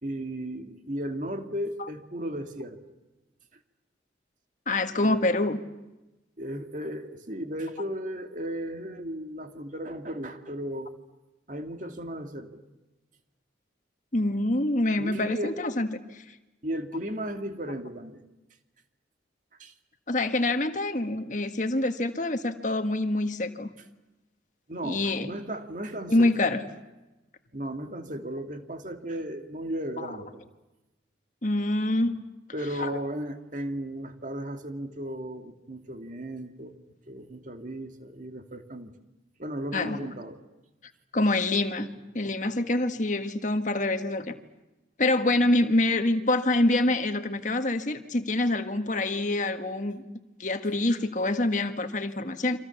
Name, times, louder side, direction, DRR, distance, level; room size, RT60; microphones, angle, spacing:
voice 1, 0.0-2.8 5.0-5.2 6.4-10.9 11.5-12.6 15.0-15.6 16.6-18.2 19.6-19.7 24.7-26.3 27.5-30.4 32.5-36.8 37.1-38.9 39.4-40.4, right 1 dB, 45° right, 6 dB, 2.2 m, -35 dB
voice 2, 4.7-5.6 14.1-15.9 16.1-16.2 20.1-23.7 24.8-25.3 26.1-26.6 30.0-30.2 31.4-32.2 32.8-33.0 39.7-40.1 41.1-44.3 45.0-50.0 50.4-52.6, left 2 dB, 45° left, 7 dB, 1.6 m, -26 dB
30.0 x 25.5 x 7.2 m, 1.0 s
head